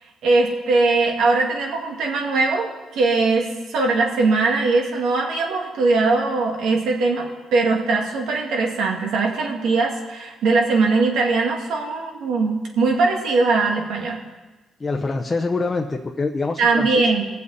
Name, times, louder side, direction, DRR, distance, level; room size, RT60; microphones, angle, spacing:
voice 1, 0.2-14.2 16.6-17.2, right 3 dB, 80° right, 1 dB, 2.2 m, -20 dB
voice 2, 14.8-17.0, left 3 dB, 25° left, 1 dB, 0.8 m, -25 dB
20.5 x 7.6 x 4.1 m, 1.2 s
cardioid pair, 90°, 0 cm